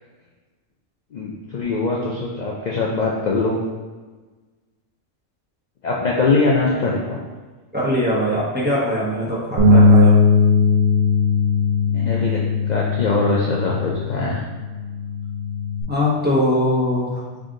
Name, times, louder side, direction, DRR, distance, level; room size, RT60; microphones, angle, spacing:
voice 1, 1.1-3.6 5.8-7.2 11.9-12.4 12.7-14.4, left 3 dB, 55° left, -3 dB, 0.5 m, -22 dB
voice 2, 7.7-10.1 15.9-17.4, left 1 dB, 10° right, -8 dB, 1.0 m, -21 dB
Bass guitar, 9.6-15.8, left 3 dB, 35° right, 0.7 m, -18 dB
4.9 x 2.6 x 3.8 m, 1.3 s
omnidirectional pair, 1.4 m